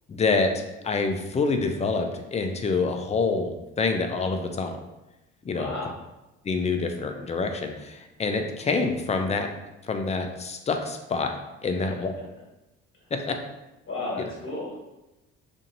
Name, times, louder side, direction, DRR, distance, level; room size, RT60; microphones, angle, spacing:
voice 1, 0.1-0.5 0.8-4.8 5.4-5.7 6.4-9.5 9.9-11.3 11.6-12.1 13.1-13.4 14.2-14.3, left 4 dB, 20° left, 5 dB, 0.4 m, -26 dB
voice 2, 5.5-5.9 11.8-12.0 13.9-14.7, left 2 dB, 40° left, -4 dB, 1.3 m, -33 dB
2.8 x 2.6 x 2.6 m, 0.98 s
supercardioid pair, 75°, 31 cm